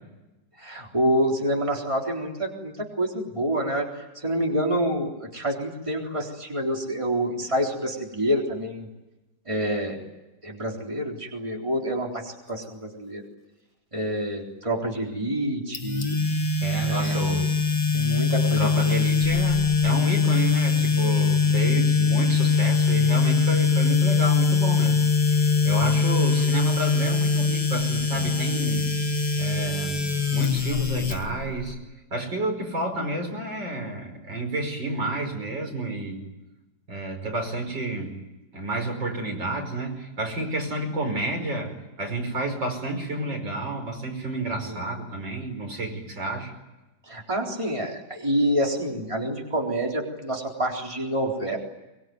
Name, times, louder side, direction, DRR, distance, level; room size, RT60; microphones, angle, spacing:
voice 1, 0.6-8.9 9.5-10.0 10.4-13.2 13.9-16.2 16.8-17.2 17.9-18.7 21.5-21.8 25.8-26.0 44.6-44.8 47.1-51.6, equal, 15° right, 0 dB, 3.9 m, -27 dB
sound 1, 15.7-31.7, left 4 dB, 20° left, 1.4 m, -22 dB
voice 2, 16.6-17.5 18.4-25.0 25.3-28.9 29.4-31.8 32.1-36.2 36.9-38.2 38.5-46.5, right 2 dB, 85° right, 3 dB, 6.1 m, -30 dB
23.5 x 23.0 x 9.5 m, 1.0 s
omnidirectional pair, 1.9 m